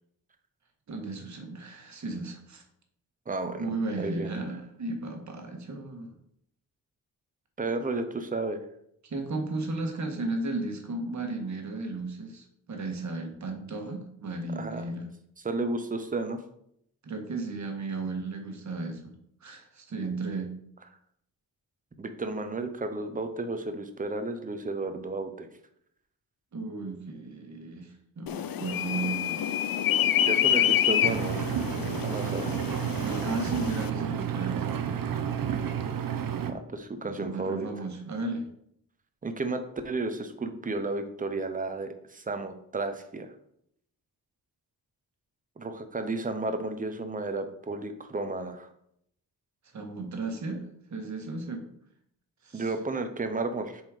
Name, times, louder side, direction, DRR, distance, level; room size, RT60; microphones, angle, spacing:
voice 1, 0.9-2.6 3.6-6.1 9.0-15.1 17.0-19.1 19.4-20.5 26.5-29.5 33.0-34.7 37.1-38.5 49.7-50.6 50.9-51.6 52.4-52.7, right 3 dB, 55° right, 3 dB, 1.5 m, -34 dB
voice 2, 3.3-4.4 7.6-8.6 14.6-14.9 15.4-16.4 22.0-25.5 30.2-31.6 32.0-32.5 36.5-37.7 39.2-43.3 45.6-48.7 52.5-53.8, right 3 dB, 25° right, 7 dB, 0.8 m, -33 dB
sound 1, 28.3-33.9, left 10 dB, 75° left, 0.5 m, -27 dB
Engine, 31.0-36.5, right 8 dB, 70° right, 0.8 m, -31 dB
7.1 x 4.4 x 4.9 m, 0.71 s
wide cardioid pair, 140°, 35 cm